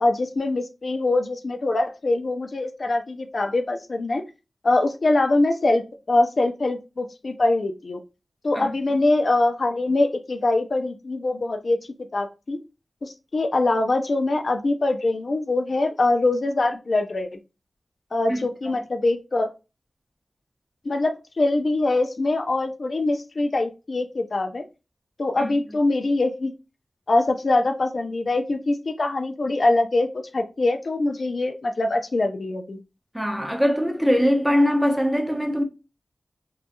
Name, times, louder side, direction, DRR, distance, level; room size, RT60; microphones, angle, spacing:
voice 1, 0.0-4.2 4.6-8.0 8.4-11.8 12.1-12.6 13.0-17.3 18.1-19.5 20.9-24.6 25.2-26.5 27.1-32.8, left 2 dB, 65° left, 0.3 m, -23 dB
voice 2, 33.1-35.6, equal, 5° right, 0.7 m, -22 dB
2.7 x 2.3 x 2.5 m
cardioid pair, 50°, 0 cm